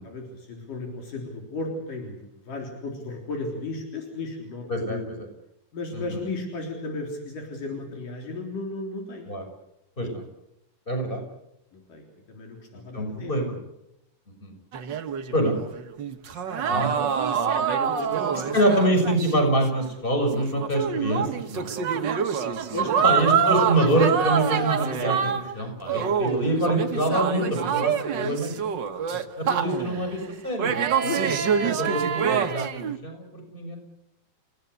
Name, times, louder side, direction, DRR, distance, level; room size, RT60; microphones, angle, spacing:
voice 1, 0.0-5.1 5.7-9.3 11.7-13.3 16.3-18.6 22.7-23.2 26.3-26.6 29.1-29.2 31.0-31.3, left 2 dB, 75° left, 1 dB, 5.5 m, -35 dB
voice 2, 10.9-11.2 12.7-13.6 14.4-14.5 15.3-15.6 16.7-16.9 18.5-21.7 23.0-28.8 29.4-31.2 31.5-33.8, right 1 dB, 15° left, 4 dB, 6.4 m, -25 dB
sound 1, 14.7-19.5 19.8-19.9 20.3-25.5 25.9-30.1 30.6-33.0, right 7 dB, 55° right, 1.2 m, -26 dB
30.0 x 17.5 x 8.2 m, 0.84 s
omnidirectional pair, 3.8 m